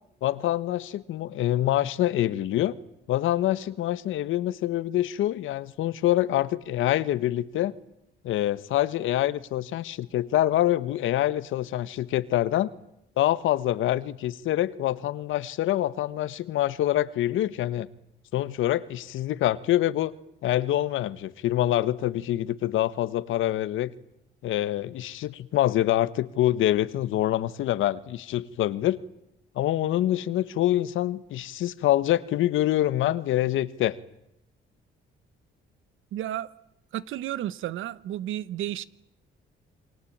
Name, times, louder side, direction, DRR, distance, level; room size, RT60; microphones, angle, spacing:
voice 1, 0.2-2.7 3.1-7.7 8.2-12.7 13.2-17.9 18.3-20.1 20.4-23.9 24.4-29.0 29.5-34.0, left 13 dB, 85° left, 1.4 m, -25 dB
voice 2, 36.1-36.5 36.9-38.8, right 12 dB, 80° right, 1.1 m, -32 dB
28.0 x 23.5 x 8.8 m
cardioid pair, 90°, 20 cm